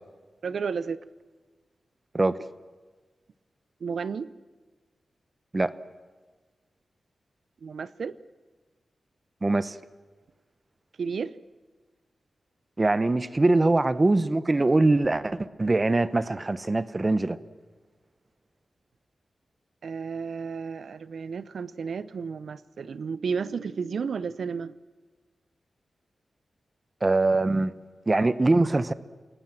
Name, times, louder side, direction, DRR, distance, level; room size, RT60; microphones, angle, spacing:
voice 1, 0.4-1.0 3.8-4.3 7.6-8.2 11.0-11.3 19.8-24.7, right 5 dB, 70° right, 0.8 m, -32 dB
voice 2, 9.4-9.8 12.8-17.4 27.0-27.7 28.1-28.9, right 2 dB, 25° right, 0.9 m, -23 dB
28.0 x 19.5 x 7.5 m
wide cardioid pair, 140°, 0 cm